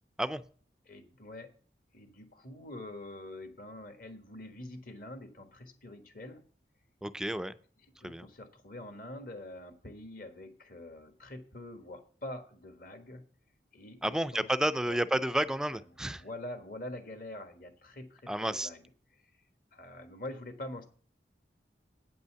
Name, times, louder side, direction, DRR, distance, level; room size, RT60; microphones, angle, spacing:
voice 1, 0.9-1.5 1.9-6.4 8.0-13.2 13.7-14.5 14.9-15.0 16.2-18.8 19.7-20.9, left 1 dB, 50° left, 7 dB, 1.5 m, -45 dB
voice 2, 7.0-7.5 8.0-8.3 14.0-16.2 18.3-18.7, right 1 dB, 5° right, 13 dB, 0.3 m, -31 dB
8.9 x 5.4 x 6.8 m, 0.43 s
head